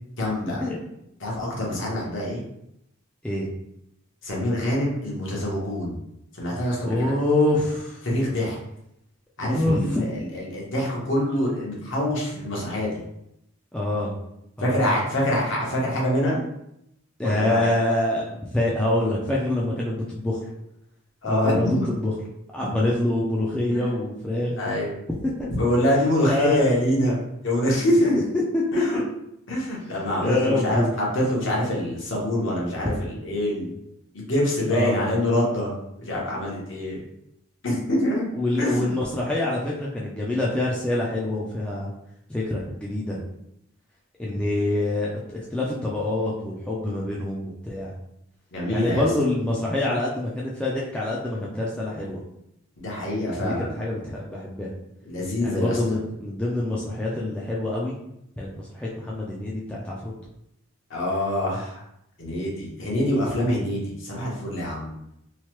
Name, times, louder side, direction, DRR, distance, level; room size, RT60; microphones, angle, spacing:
voice 1, 0.2-0.6 1.2-2.4 4.2-6.0 6.4-7.1 8.0-8.6 9.4-13.0 14.6-16.4 17.2-17.6 21.2-21.9 23.7-23.8 24.6-24.9 25.5-28.2 28.7-29.0 29.5-33.8 34.1-35.7 36.0-37.0 37.6-38.2 38.6-38.9 48.5-49.1 52.8-53.7 55.1-55.8 60.9-61.8 62.2-64.9, left 1 dB, 60° left, -4 dB, 0.9 m, -25 dB
voice 2, 6.8-8.0 9.4-10.2 13.7-14.1 14.6-14.9 17.2-20.4 21.2-21.7 22.0-22.1 22.5-24.5 25.4-25.5 26.2-26.7 27.9-29.0 30.2-30.9 34.7-35.1 38.3-41.9 42.3-43.2 44.2-47.9 48.7-52.2 53.3-54.7 55.4-58.0 58.4-60.1, left 1 dB, 5° left, -6 dB, 0.3 m, -26 dB
3.0 x 2.1 x 3.0 m, 0.80 s
head